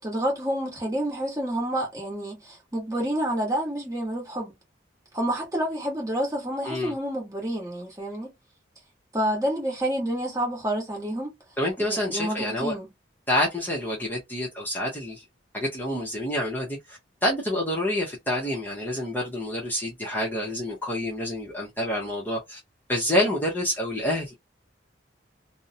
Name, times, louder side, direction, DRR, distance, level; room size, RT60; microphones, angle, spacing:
voice 1, 0.0-4.5 5.1-8.3 9.1-11.3 11.8-12.9, right 1 dB, 20° right, 1.0 m, -29 dB
voice 2, 11.6-12.8 13.3-15.2 15.5-22.6 22.9-24.3, left 1 dB, 10° left, 0.6 m, -28 dB
2.4 x 2.0 x 2.7 m
head